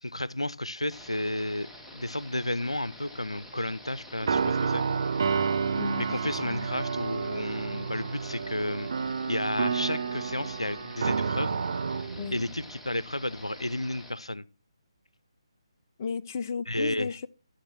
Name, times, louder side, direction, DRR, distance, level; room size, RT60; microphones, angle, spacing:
voice 1, 0.0-1.7 1.9-4.8 5.3-5.4 6.0-8.9 9.3-11.6 12.3-14.4 16.7-17.1, left 1 dB, 80° left, 0.6 m, -32 dB
sound 1, 0.9-14.1, left 1 dB, ahead, 1.4 m, -48 dB
sound 2, 4.2-12.7, right 5 dB, 50° right, 0.7 m, -30 dB
voice 2, 5.7-6.7 12.2-12.4 16.0-17.3, left 6 dB, 30° left, 0.5 m, -35 dB
13.0 x 6.6 x 6.0 m
figure-of-eight pair, 145°, 3 cm